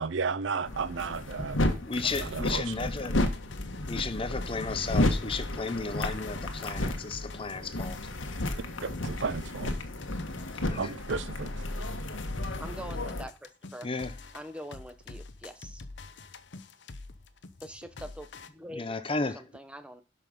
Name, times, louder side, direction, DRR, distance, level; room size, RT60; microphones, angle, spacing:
voice 1, 0.0-1.6 2.2-2.6 8.8-9.7 10.8-11.5, right 5 dB, 70° right, 0.5 m, -33 dB
sound 1, 0.6-13.2, left 1 dB, 80° left, 1.5 m, -32 dB
voice 2, 1.8-3.2 3.9-8.1 10.5-10.9 13.8-14.2 18.7-19.4, left 3 dB, 30° left, 0.7 m, -34 dB
sound 2, 3.0-18.5, left 3 dB, 65° left, 0.9 m, -46 dB
voice 3, 12.6-13.9 14.3-15.8 17.6-20.0, equal, 5° right, 0.9 m, -44 dB
11.0 x 5.8 x 5.3 m
head